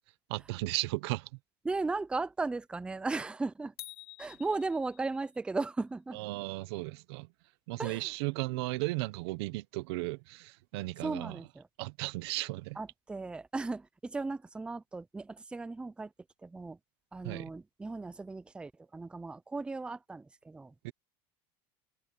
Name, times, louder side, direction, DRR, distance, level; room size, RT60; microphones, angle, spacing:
voice 1, 0.3-1.3 6.1-7.3 7.7-11.4 11.8-12.8 17.2-17.5 20.8-20.9, right 21 dB, 80° right, 0.9 m, -35 dB
voice 2, 1.6-3.7 4.2-6.2 7.8-8.1 11.0-11.7 12.8-16.1 16.4-16.8 17.1-20.7, right 3 dB, 5° right, 0.6 m, -36 dB
sound 1, 3.8-5.4, left 20 dB, 85° left, 3.0 m, -49 dB
cardioid pair, 150°, 13 cm